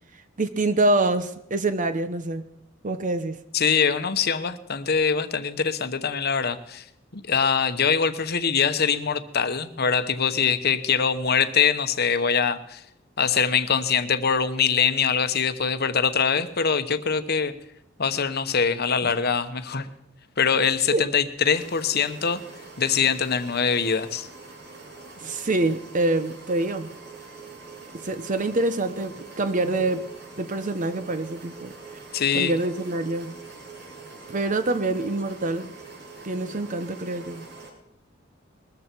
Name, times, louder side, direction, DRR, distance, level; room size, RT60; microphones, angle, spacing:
voice 1, 0.4-2.5 2.8-3.4 19.0-19.1 20.9-21.1 25.2-26.9 28.0-30.1 30.4-31.7 32.3-33.3 34.3-35.7 36.2-37.4, right 2 dB, 40° right, 10 dB, 0.9 m, -25 dB
voice 2, 3.5-6.9 7.1-12.8 13.2-17.5 18.0-19.9 20.4-22.4 22.8-24.3 32.1-32.5, left 6 dB, 55° left, 11 dB, 1.1 m, -23 dB
sound 1, 21.5-37.7, right 4 dB, 60° right, 6.1 m, -44 dB
21.0 x 14.0 x 4.6 m, 0.79 s
head